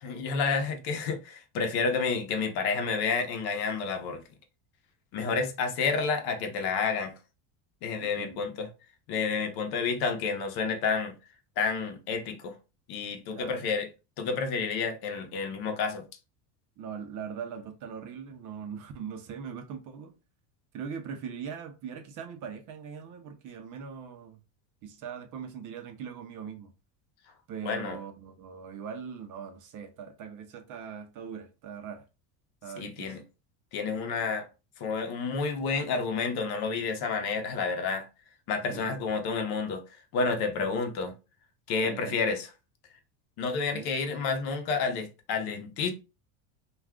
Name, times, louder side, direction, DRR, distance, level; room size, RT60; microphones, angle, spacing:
voice 1, 0.0-4.2 5.1-7.1 7.8-8.7 9.1-11.1 11.6-12.5 12.9-13.9 14.2-16.0 27.6-28.0 32.8-33.2 33.7-34.5 34.8-38.1 38.5-39.8 40.1-41.1 41.7-42.5 43.4-45.9, left 5 dB, 55° left, 0.8 m, -30 dB
voice 2, 8.0-8.4 13.3-13.7 16.8-20.2 20.7-24.4 24.8-26.7 27.5-32.0 32.6-33.2 38.7-39.0 41.8-42.2 43.7-43.9, right 7 dB, 40° right, 0.6 m, -41 dB
2.4 x 2.3 x 3.5 m
supercardioid pair, 130°, 47 cm